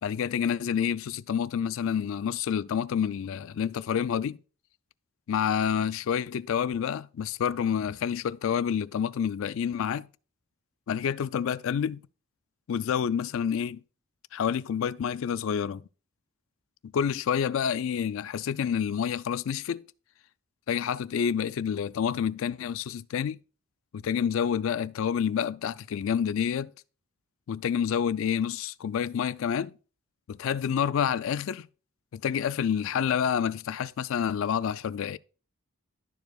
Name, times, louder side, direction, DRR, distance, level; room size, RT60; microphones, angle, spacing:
voice 1, 0.0-4.4 5.3-10.1 10.9-12.0 12.7-13.8 14.3-15.8 16.9-19.9 20.7-23.4 23.9-26.7 27.5-29.7 30.3-31.7 32.1-35.2, left 8 dB, 65° left, 0.3 m, -28 dB
12.0 x 4.7 x 2.3 m
head